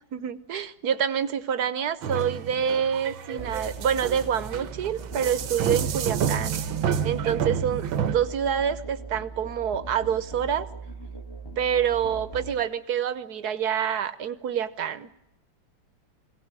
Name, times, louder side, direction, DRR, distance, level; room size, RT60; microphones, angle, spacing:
voice 1, 0.1-6.6 7.0-10.7 11.6-15.1, right 8 dB, 55° right, 15 dB, 1.5 m, -27 dB
sound 1, 2.0-8.1, right 7 dB, 80° right, 1.9 m, -29 dB
Musical instrument, 3.4-12.6, right 4 dB, 15° left, 1.6 m, -40 dB
22.5 x 17.5 x 9.7 m, 0.88 s
omnidirectional pair, 2.1 m